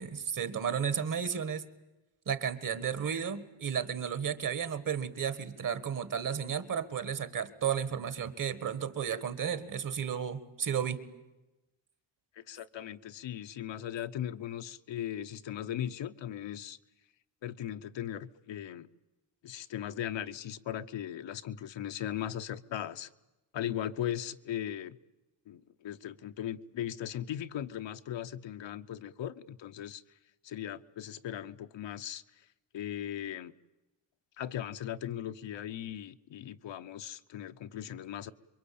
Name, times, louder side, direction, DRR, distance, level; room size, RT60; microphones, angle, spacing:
voice 1, 0.0-1.6 2.3-11.0, right 8 dB, 40° right, 13 dB, 1.6 m, -33 dB
voice 2, 12.4-16.8 17.4-18.9 19.4-23.1 23.5-25.0 25.5-30.0 30.4-32.2 32.7-33.5 34.4-38.3, left 11 dB, 65° left, 10 dB, 1.0 m, -38 dB
27.5 x 23.5 x 8.6 m, 1.0 s
wide cardioid pair, 175°, 47 cm